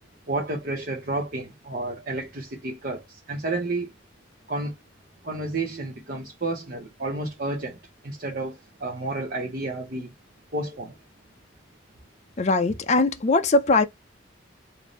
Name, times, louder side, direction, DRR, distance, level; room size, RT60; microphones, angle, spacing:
voice 1, 0.3-3.9 4.5-4.7 5.2-7.8 8.0-10.1 10.5-10.9, right 2 dB, 50° right, 0.8 m, -31 dB
voice 2, 12.4-13.8, left 3 dB, 35° left, 0.4 m, -20 dB
3.5 x 2.6 x 3.8 m
head